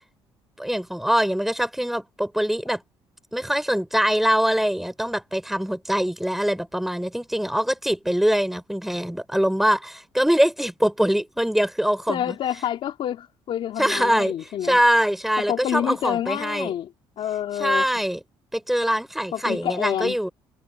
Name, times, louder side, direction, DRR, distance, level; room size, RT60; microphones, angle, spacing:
voice 1, 0.6-2.8 3.3-12.4 13.8-14.3 14.6-16.7 17.6-18.2 18.5-20.3, equal, ahead, 5.2 m, -23 dB
voice 2, 12.1-14.8 15.4-16.9 17.2-17.9 19.3-20.2, left 11 dB, 65° left, 3.3 m, -28 dB
cardioid pair, 95°, 10 cm